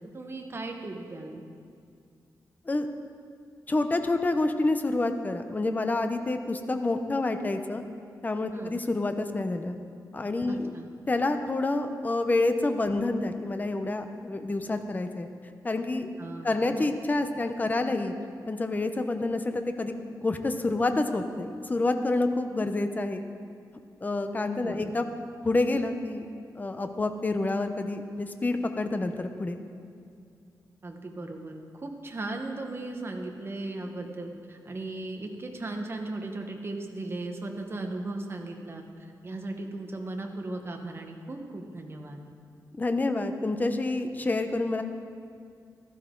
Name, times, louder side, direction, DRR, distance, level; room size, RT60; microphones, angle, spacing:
voice 1, 0.0-1.4 8.5-8.8 10.5-10.9 16.2-16.7 24.6-25.0 30.8-38.8 39.2-42.2, right 2 dB, 35° right, 3 dB, 1.2 m, -37 dB
voice 2, 3.7-7.8 8.2-9.7 10.1-10.7 11.1-15.3 15.6-16.1 16.4-18.1 18.5-19.9 20.2-23.2 24.0-25.1 25.4-26.3 26.6-29.6 42.7-44.8, left 2 dB, 25° left, 7 dB, 0.7 m, -28 dB
15.5 x 12.5 x 3.8 m, 2.3 s
wide cardioid pair, 125°, 7 cm